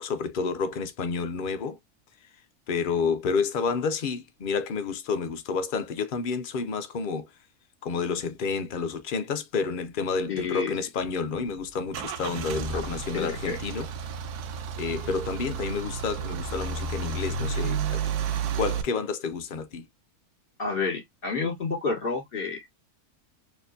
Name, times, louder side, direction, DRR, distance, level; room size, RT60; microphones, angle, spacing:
voice 1, 0.0-1.8 2.2-2.3 2.7-7.4 7.8-13.9 14.8-18.1 18.5-19.9, left 5 dB, 65° left, 0.5 m, -30 dB
voice 2, 10.3-10.7 12.7-12.9 13.1-13.6 20.6-22.7, left 4 dB, 35° left, 1.9 m, -30 dB
Car / Engine starting / Idling, 11.0-18.8, right 6 dB, 80° right, 1.2 m, -32 dB
4.2 x 3.1 x 2.5 m
omnidirectional pair, 1.6 m